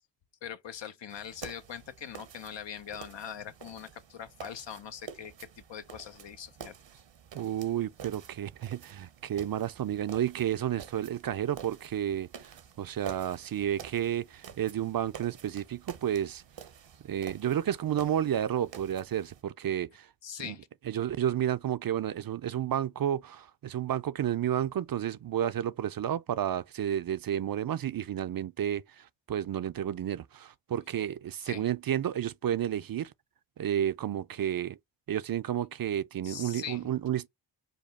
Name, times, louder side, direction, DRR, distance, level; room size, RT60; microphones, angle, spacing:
voice 1, 0.4-6.7 20.2-20.7 31.3-31.6 36.2-36.8, left 8 dB, 75° left, 0.8 m, -42 dB
sound 1, 1.1-19.4, right 8 dB, 80° right, 0.9 m, -49 dB
voice 2, 7.3-16.4 17.0-20.1 20.4-20.6 20.9-33.1 33.6-34.8 35.1-37.3, right 10 dB, 55° right, 0.5 m, -31 dB
5.2 x 2.2 x 4.0 m
cardioid pair, 65°, 44 cm